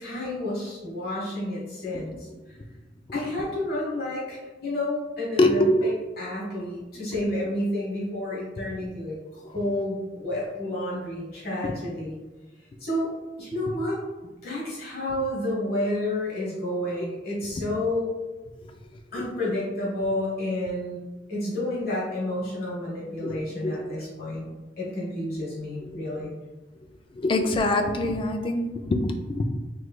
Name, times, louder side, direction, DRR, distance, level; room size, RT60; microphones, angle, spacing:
voice 1, 0.0-2.3 3.1-12.2 12.8-13.1 13.4-18.1 19.1-21.0 21.3-24.5 24.8-26.3, left 1 dB, 60° left, -6 dB, 1.1 m, -30 dB
voice 2, 5.4-5.9 23.2-23.3 23.6-23.8 25.8-25.9 27.2-29.5, left 1 dB, 30° left, 4 dB, 0.3 m, -23 dB
3.1 x 3.1 x 2.3 m, 1.2 s
head